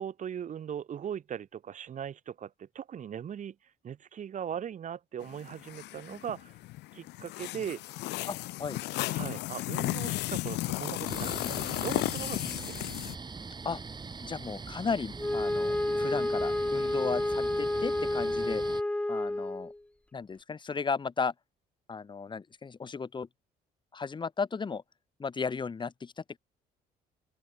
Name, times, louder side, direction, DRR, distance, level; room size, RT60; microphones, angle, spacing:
voice 1, 0.0-3.5 3.8-6.6 6.9-7.8 9.1-12.9, right 9 dB, 50° right, 3.2 m, -39 dB
sound 1, 5.2-13.2, left 19 dB, 85° left, 2.1 m, -34 dB
voice 2, 8.3-8.8 13.6-13.8 14.2-18.6 19.1-19.7 20.1-21.3 21.9-23.3 23.9-24.8 25.2-26.4, left 5 dB, 25° left, 2.8 m, -35 dB
sound 2, 11.1-18.8, right 4 dB, 25° right, 6.4 m, -42 dB
Wind instrument woodwind instrument, 15.2-19.8, left 1 dB, 5° left, 1.3 m, -30 dB
open air
cardioid pair, 110°, 17 cm